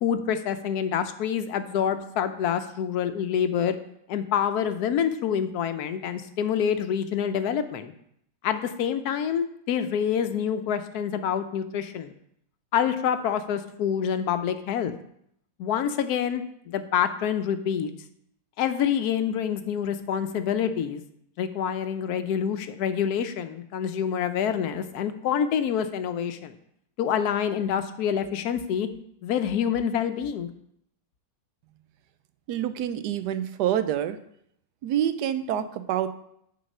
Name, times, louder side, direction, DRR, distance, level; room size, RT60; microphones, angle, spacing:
voice 1, 0.0-3.8 4.1-7.9 8.4-12.1 12.7-14.9 15.6-17.9 18.6-21.0 21.4-26.5 27.0-28.9 29.2-30.5, left 8 dB, 75° left, 10 dB, 1.1 m, -27 dB
voice 2, 32.5-34.2 34.8-36.1, right 10 dB, 85° right, 11 dB, 1.2 m, -27 dB
9.3 x 4.0 x 5.4 m, 0.72 s
omnidirectional pair, 1.7 m